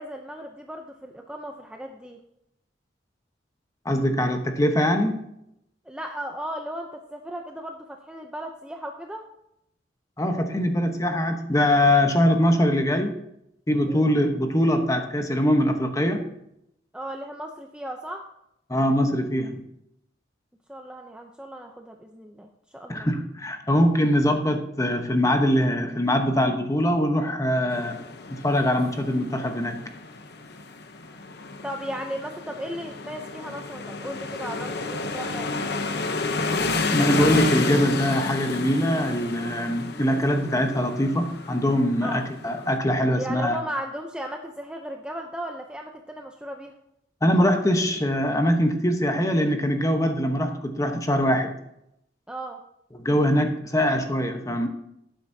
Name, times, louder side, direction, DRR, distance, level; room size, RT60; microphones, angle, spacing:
voice 1, 0.0-2.2 5.9-9.3 13.9-14.1 16.9-18.3 20.7-23.1 31.6-35.5 42.0-42.2 43.2-46.7 52.3-52.6, right 1 dB, 5° right, 3 dB, 0.6 m, -36 dB
voice 2, 3.8-5.2 10.2-13.1 13.7-16.2 18.7-19.6 22.9-28.0 28.3-29.8 36.9-43.6 47.2-51.5 52.9-54.7, equal, 15° left, 5 dB, 1.0 m, -22 dB
sound 1, 27.7-42.8, left 3 dB, 60° left, 0.9 m, -31 dB
12.0 x 9.1 x 2.8 m, 0.78 s
head